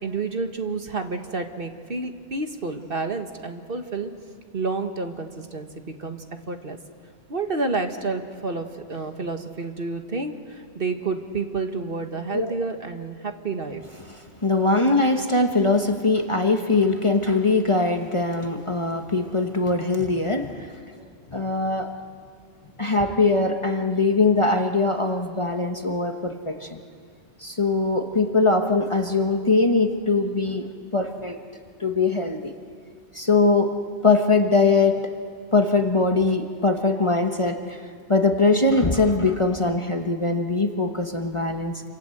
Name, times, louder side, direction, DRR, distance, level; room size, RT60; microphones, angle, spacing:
voice 1, 0.0-4.1 4.5-6.2 6.5-6.8 7.3-13.8, right 3 dB, 50° right, 6 dB, 1.6 m, -29 dB
voice 2, 14.1-20.7 21.3-21.9 22.8-26.8 27.4-31.4 31.8-32.5 33.1-33.7 34.0-35.1 35.5-37.8 38.1-41.8, left 3 dB, 25° left, 5 dB, 1.3 m, -22 dB
28.0 x 26.0 x 7.9 m, 2.1 s
omnidirectional pair, 1.3 m